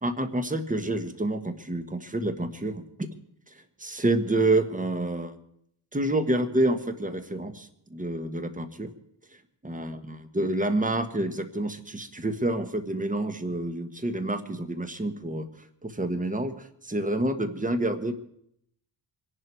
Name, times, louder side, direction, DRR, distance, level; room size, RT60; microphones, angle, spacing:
voice 1, 0.0-3.1 3.5-5.4 5.9-8.9 9.6-15.5 15.8-18.1, right 2 dB, 15° right, 8 dB, 1.4 m, -28 dB
24.5 x 11.0 x 4.7 m, 0.70 s
wide cardioid pair, 115°, 46 cm